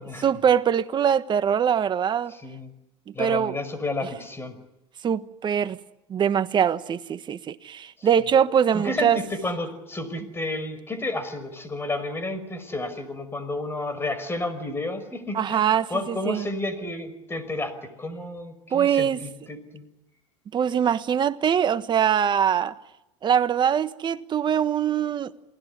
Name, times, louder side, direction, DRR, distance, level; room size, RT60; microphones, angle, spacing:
voice 1, 0.2-2.3 3.2-3.5 5.0-5.8 6.1-9.2 15.3-16.5 18.7-19.2 20.5-22.7 23.2-25.3, right 8 dB, 30° right, 1.3 m, -23 dB
voice 2, 2.3-2.7 3.1-4.5 8.0-8.1 8.7-19.9, left 2 dB, 15° left, 5.7 m, -31 dB
28.5 x 19.5 x 9.9 m
supercardioid pair, 105°, 15 cm